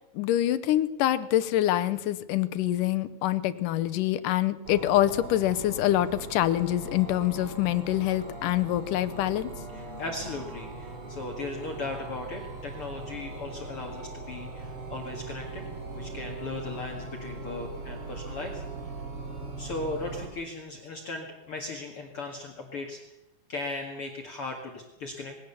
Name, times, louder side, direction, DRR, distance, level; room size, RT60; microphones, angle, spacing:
voice 1, 0.2-9.5, left 13 dB, 85° left, 13 dB, 2.5 m, -25 dB
sound 1, 4.6-20.3, right 3 dB, 45° right, 3.8 m, -40 dB
voice 2, 9.7-15.7 15.9-18.6 19.6-23.0 23.5-25.4, left 3 dB, 45° left, 1 dB, 2.7 m, -37 dB
21.0 x 17.5 x 7.1 m, 0.90 s
omnidirectional pair, 3.7 m